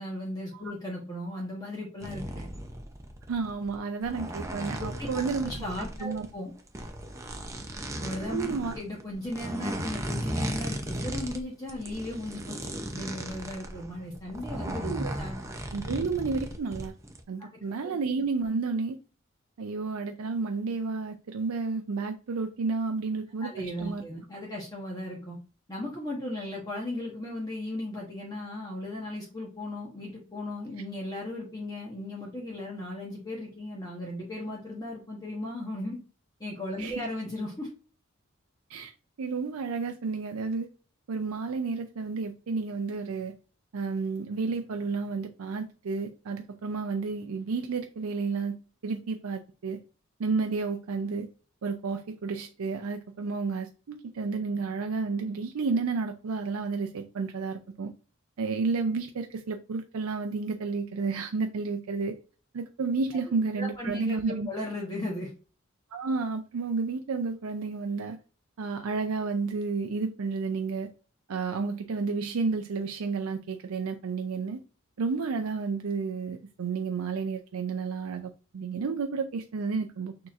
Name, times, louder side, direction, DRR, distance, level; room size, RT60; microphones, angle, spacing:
voice 1, 0.0-2.4 5.0-6.5 8.0-14.9 15.2-15.3 17.4-17.6 23.4-25.4 25.7-36.0 36.4-37.7 63.1-65.3, left 1 dB, 20° left, 1.0 m, -36 dB
sound 1, 2.0-6.3 6.6-11.4 11.7-17.2, right 1 dB, 15° right, 0.5 m, -36 dB
voice 2, 3.3-5.5 6.0-6.3 8.3-8.7 14.8-15.2 15.7-16.9 17.3-19.0 19.6-24.0 36.8-37.1 38.7-38.9 39.2-40.7 41.1-43.3 43.7-48.6 48.8-49.8 50.2-51.3 51.6-57.9 58.4-62.1 62.5-64.5 65.9-68.2 68.6-70.9 71.3-74.6 75.0-80.1, right 4 dB, 90° right, 0.5 m, -31 dB
6.3 x 2.8 x 2.4 m
head